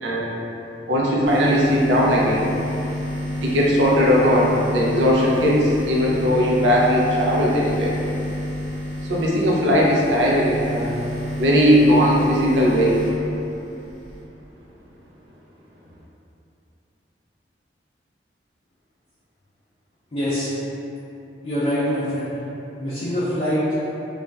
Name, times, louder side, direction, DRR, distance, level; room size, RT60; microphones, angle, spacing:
voice 1, 0.0-0.3 0.9-2.5 3.4-7.9 9.0-10.9 11.4-13.0, equal, 75° right, -4 dB, 0.5 m, -18 dB
sound 1, 1.3-14.2, left 1 dB, 30° right, 1.0 m, -29 dB
voice 2, 20.1-20.5 21.4-22.3 22.8-23.6, equal, 35° left, -12 dB, 0.4 m, -24 dB
2.4 x 2.1 x 3.2 m, 2.9 s
head